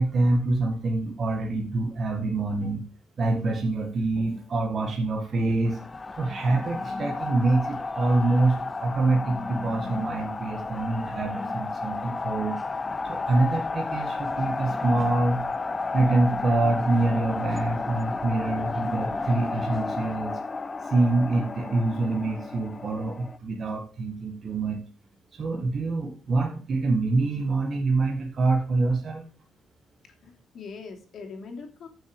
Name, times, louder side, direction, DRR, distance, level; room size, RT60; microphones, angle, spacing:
voice 1, 0.0-2.8 3.2-5.9 6.2-12.6 13.0-15.4 15.9-20.4 20.8-24.8 25.3-29.2, right 2 dB, 35° right, 2 dB, 1.7 m, -25 dB
sound 1, 5.7-23.4, left 3 dB, 20° left, 0.5 m, -32 dB
voice 2, 30.0-31.9, left 4 dB, 45° left, 2 dB, 3.0 m, -42 dB
14.5 x 6.5 x 5.1 m, 0.38 s
cardioid pair, 150°, 0 cm